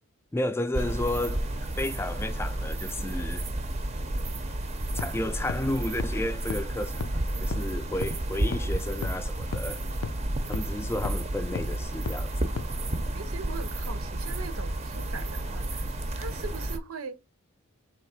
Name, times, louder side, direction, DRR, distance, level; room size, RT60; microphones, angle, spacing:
voice 1, 0.3-3.4 4.9-7.1 7.4-9.8 10.5-12.3, left 1 dB, 10° left, 0.3 m, -32 dB
sound 1, 0.7-16.8, right 1 dB, 30° right, 0.6 m, -31 dB
sound 2, 5.0-5.1 5.5-5.6 6.0-6.1 6.5-6.6 7.0-7.1 7.5-7.6 8.0-8.1 8.5-8.6 9.0-9.1 9.5-9.6 10.0-10.1 10.5-10.6 11.0-11.1 11.6-11.7 12.1-12.2 12.6-12.7, left 4 dB, 85° left, 0.5 m, -31 dB
voice 2, 13.1-17.2, right 5 dB, 75° right, 0.6 m, -41 dB
3.7 x 3.1 x 4.7 m
head